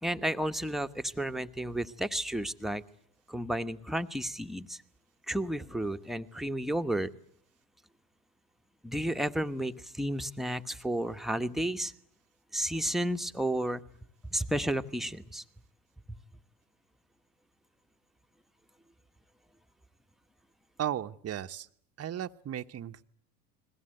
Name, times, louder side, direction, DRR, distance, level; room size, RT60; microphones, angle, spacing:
voice 1, 0.0-2.8 3.3-4.8 5.3-7.1 8.8-11.9 12.5-13.8 14.3-15.4 16.1-16.2, right 1 dB, ahead, 7 dB, 1.3 m, -32 dB
voice 2, 20.8-21.7 22.0-23.0, right 10 dB, 30° right, 8 dB, 1.1 m, -35 dB
29.5 x 21.0 x 7.9 m, 0.66 s
hypercardioid pair, 75°, 49 cm